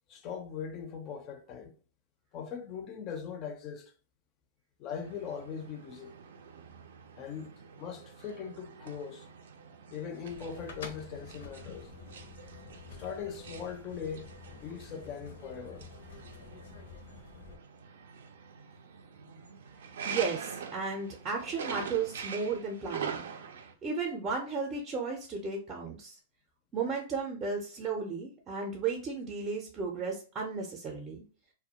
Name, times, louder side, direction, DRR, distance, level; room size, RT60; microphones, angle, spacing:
voice 1, 0.1-1.7 2.3-3.9 4.8-6.1 7.2-9.3 9.9-11.9 13.0-15.9, left 7 dB, 35° left, 0.4 m, -40 dB
sound 1, 4.9-23.7, right 6 dB, 80° right, 0.4 m, -45 dB
sound 2, 10.3-17.6, left 4 dB, 80° left, 0.6 m, -49 dB
voice 2, 20.0-23.2 23.8-26.2 26.7-31.2, right 4 dB, 25° right, 0.5 m, -34 dB
2.3 x 2.1 x 2.7 m
hypercardioid pair, 140°, 0 cm